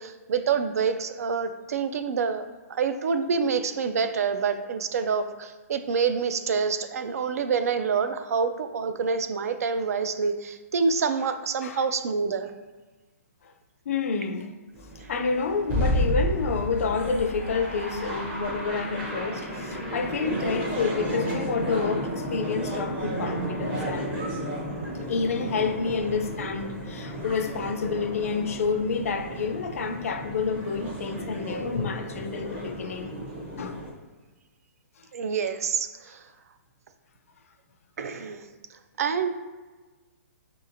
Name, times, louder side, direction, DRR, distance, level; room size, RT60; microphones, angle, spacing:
voice 1, 0.0-12.5 35.1-36.2 38.0-38.5 39.0-39.3, right 5 dB, 70° right, 10 dB, 0.4 m, -27 dB
voice 2, 13.9-14.5 15.1-24.2 25.1-33.2 33.5-33.8, left 5 dB, 65° left, 7 dB, 0.4 m, -29 dB
sound 1, 14.7-33.9, equal, 15° right, 0.6 m, -32 dB
5.5 x 2.8 x 2.5 m, 1.3 s
hypercardioid pair, 170°, 8 cm